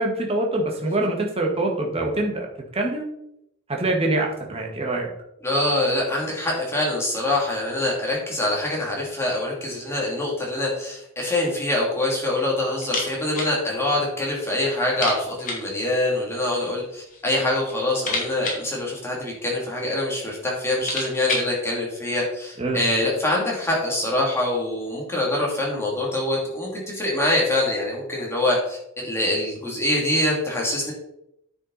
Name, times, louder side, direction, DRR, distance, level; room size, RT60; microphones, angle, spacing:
voice 1, 0.0-2.5 2.7-3.0 3.7-5.1 22.6-22.9, right 2 dB, 25° right, 0 dB, 1.6 m, -24 dB
voice 2, 5.4-30.9, left 1 dB, 10° left, -3 dB, 2.6 m, -24 dB
sound 1, 12.8-13.6 13.8-13.9 14.3-14.4 14.9-15.7 16.7-17.3 17.6-19.6 20.3-20.4 20.6-21.6, left 3 dB, 40° left, 2.4 m, -31 dB
9.7 x 5.8 x 4.1 m, 0.79 s
head